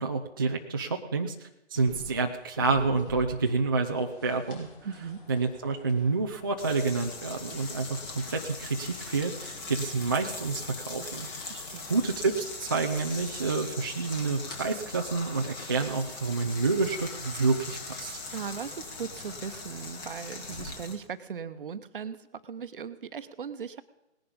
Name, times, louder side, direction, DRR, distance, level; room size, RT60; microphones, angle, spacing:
voice 1, 0.0-4.7 5.3-11.6 11.9-18.2, right 4 dB, 20° right, 2 dB, 0.4 m, -29 dB
sound 1, 1.7-20.7, left 2 dB, 50° left, 6.2 m, -50 dB
voice 2, 4.8-5.2 11.5-11.9 18.3-23.8, right 6 dB, 50° right, 11 dB, 1.0 m, -38 dB
sound 2, 6.6-21.0, left 3 dB, 15° left, 1.4 m, -41 dB
18.5 x 11.0 x 5.3 m, 0.93 s
figure-of-eight pair, 140°, 35 cm